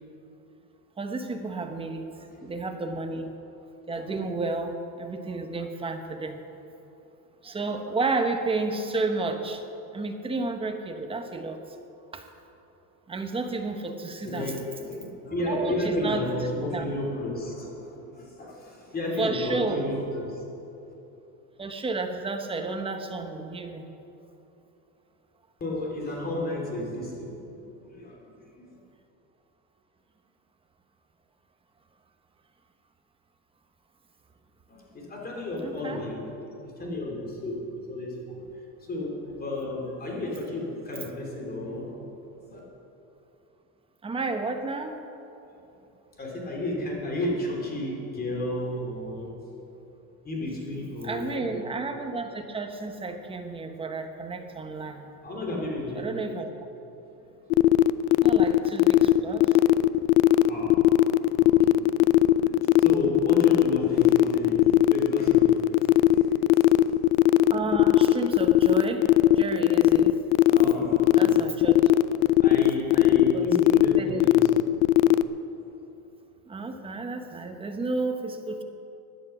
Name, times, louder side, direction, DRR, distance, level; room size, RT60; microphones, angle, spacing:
voice 1, 1.0-2.1 2.4-3.3 3.9-6.4 7.4-9.6 9.9-11.6 12.1-12.3 13.1-14.5 15.5-16.3 16.7-16.9 19.2-19.9 21.6-23.9 35.6-36.0 44.0-44.9 51.0-55.1 56.0-56.5 58.2-59.6 67.5-69.1 69.3-70.2 71.2-71.8 73.3-73.5 74.0-74.2 76.5-78.6, right 3 dB, 15° right, 5 dB, 0.9 m, -31 dB
voice 2, 14.2-20.4 25.6-28.3 28.6-28.7 34.7-36.3 36.6-38.4 38.9-42.0 42.5-42.6 46.2-49.3 50.2-51.5 53.7-53.8 55.2-56.1 57.2-57.3 59.5-60.0 60.4-60.8 61.3-62.0 62.3-67.0 70.4-71.4 72.4-74.7, left 1 dB, 20° left, -1 dB, 3.1 m, -32 dB
sound 1, 57.5-75.2, left 14 dB, 70° left, 0.6 m, -18 dB
16.0 x 10.0 x 5.9 m, 3.0 s
cardioid pair, 145°, 43 cm